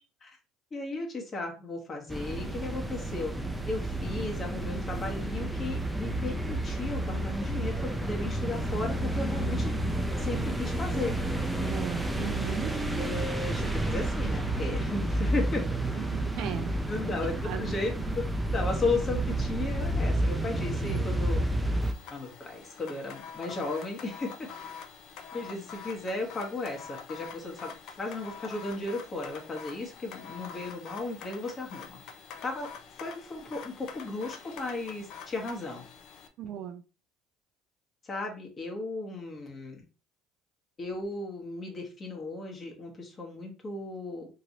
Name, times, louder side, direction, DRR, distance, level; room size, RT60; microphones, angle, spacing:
voice 1, 0.7-3.3 3.6-9.7 10.2-11.2 13.0-15.8 16.9-18.2 18.5-21.5 22.1-24.5 25.3-32.0 32.4-32.7 33.0-35.9 36.4-36.5 38.0-39.8 40.8-44.3, left 3 dB, 30° left, 1 dB, 1.1 m, -35 dB
sound 1, 2.1-21.9, right 1 dB, 5° right, 0.5 m, -30 dB
voice 2, 11.6-12.7 15.9-16.7 17.4-17.7 36.4-36.8, right 9 dB, 65° right, 8 dB, 0.4 m, -37 dB
sound 2, 21.8-36.3, left 6 dB, 65° left, 0.5 m, -46 dB
3.0 x 2.6 x 2.9 m, 0.33 s
cardioid pair, 110°, 0 cm